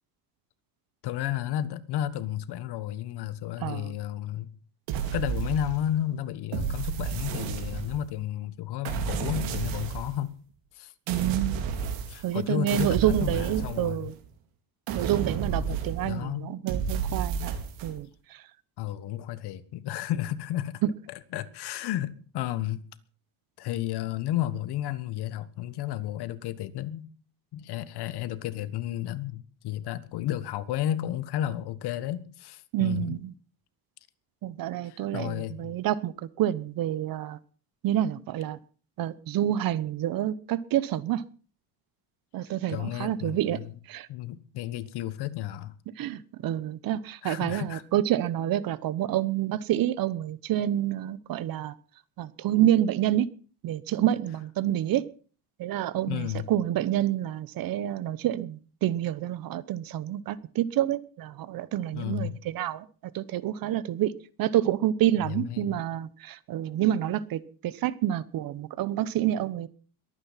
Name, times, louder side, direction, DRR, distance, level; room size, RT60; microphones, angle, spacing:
voice 1, 1.0-4.5 5.1-10.3 10.7-10.9 12.1-14.1 16.0-16.5 18.8-20.8 21.1-22.8 23.6-27.1 27.5-33.2 34.8-35.8 42.7-43.7 44.1-45.7 47.2-47.8 56.1-56.5 61.9-62.4 65.2-65.8, left 12 dB, 60° left, 1.5 m, -32 dB
voice 2, 3.6-3.9 11.1-11.6 12.2-14.1 14.9-17.6 17.8-18.5 32.7-33.3 34.4-37.4 37.8-38.6 39.0-41.2 42.3-43.6 43.9-44.1 46.0-51.7 52.2-53.3 53.6-55.0 55.6-62.9 63.1-64.1 64.4-69.7, right 12 dB, 50° right, 1.1 m, -28 dB
sound 1, 4.9-6.0 6.5-8.1 8.8-10.2 11.1-12.4 12.7-14.3 14.9-16.2 16.7-17.9, right 7 dB, 80° right, 4.3 m, -31 dB
22.0 x 9.6 x 5.8 m
cardioid pair, 145°, 45 cm